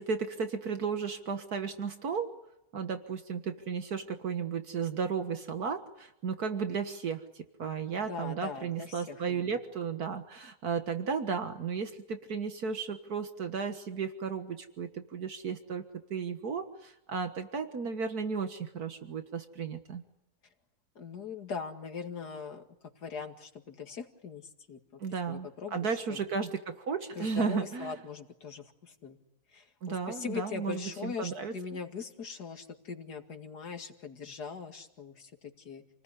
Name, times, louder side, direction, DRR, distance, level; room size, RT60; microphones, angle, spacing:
voice 1, 0.0-2.3 2.7-15.8 16.1-20.0 25.0-27.9 29.8-31.5, right 5 dB, 70° right, 7 dB, 2.0 m, -34 dB
voice 2, 8.1-9.6 21.0-22.6 23.0-25.0 25.3-26.2 27.2-29.2 29.5-36.0, left 6 dB, 85° left, 6 dB, 2.7 m, -41 dB
29.5 x 19.5 x 9.9 m, 0.87 s
omnidirectional pair, 1.7 m